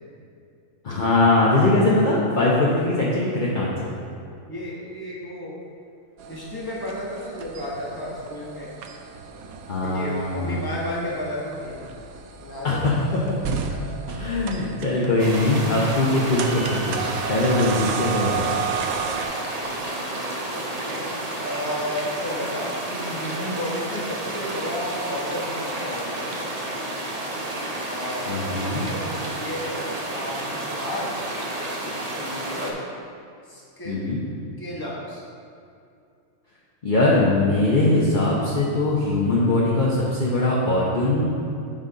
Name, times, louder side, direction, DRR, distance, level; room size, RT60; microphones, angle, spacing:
voice 1, 0.8-3.9 9.7-10.6 12.6-12.9 13.3-13.7 14.1-18.4 28.3-28.9 33.8-34.2 36.8-41.3, left 2 dB, 40° left, -5 dB, 0.9 m, -21 dB
voice 2, 4.5-5.6 6.3-8.7 9.8-11.8 12.4-12.9 13.7-13.8 20.1-21.0 21.4-26.3 27.8-29.9 30.1-31.1 32.1-32.8 33.4-34.1 34.6-35.2, left 1 dB, 15° left, -5 dB, 1.2 m, -33 dB
sound 1, 6.2-19.3, right 7 dB, 85° right, 1.0 m, -33 dB
sound 2, 15.2-32.7, right 1 dB, 35° right, 0.7 m, -31 dB
7.6 x 4.1 x 5.0 m, 2.5 s
omnidirectional pair, 1.5 m